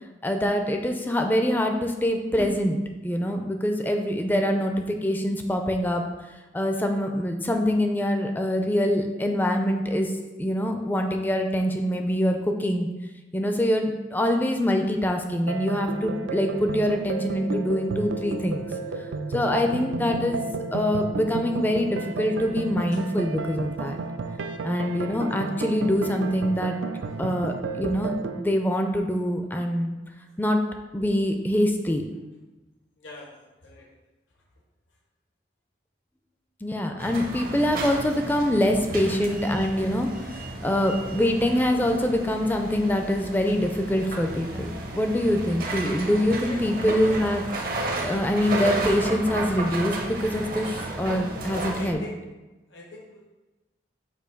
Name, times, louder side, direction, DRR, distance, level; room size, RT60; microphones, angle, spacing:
voice 1, 0.2-2.8 3.0-6.0 6.5-10.1 10.4-12.9 13.3-18.7 19.3-20.4 20.7-24.0 24.6-26.8 27.2-30.0 30.4-30.6 30.9-32.0 36.6-40.1 40.6-47.5 47.7-52.0, equal, 10° left, 4 dB, 0.4 m, -24 dB
sound 1, 15.5-28.4, right 4 dB, 85° right, 0.4 m, -32 dB
voice 2, 27.0-27.5 33.0-33.4 33.6-33.9 37.1-37.2 38.9-39.0 46.5-46.6 51.7-52.1 52.7-53.2, left 2 dB, 85° left, -2 dB, 1.0 m, -42 dB
sound 2, 37.0-51.9, right 2 dB, 50° right, 0.7 m, -33 dB
6.8 x 2.7 x 5.1 m, 1.1 s
head